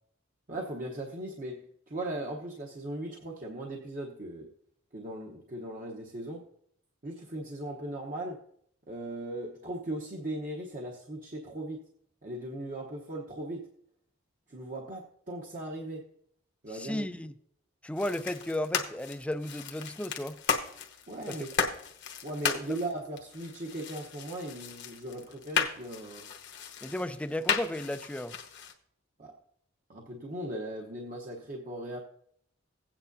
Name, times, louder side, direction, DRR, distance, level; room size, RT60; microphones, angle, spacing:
voice 1, 0.5-4.5 4.9-6.4 7.0-8.4 8.9-11.8 12.2-13.7 14.5-16.1 16.6-17.1 21.1-21.5 22.2-26.3 29.2-29.3 29.9-32.0, right 1 dB, 45° right, 1.0 m, -38 dB
voice 2, 16.7-17.3 17.8-20.4 21.3-21.4 22.7-22.8 26.8-28.4, left 1 dB, 5° left, 0.4 m, -34 dB
Bubblewrap pop plastic, 18.0-28.7, left 6 dB, 60° left, 1.1 m, -35 dB
16.0 x 8.9 x 2.7 m
head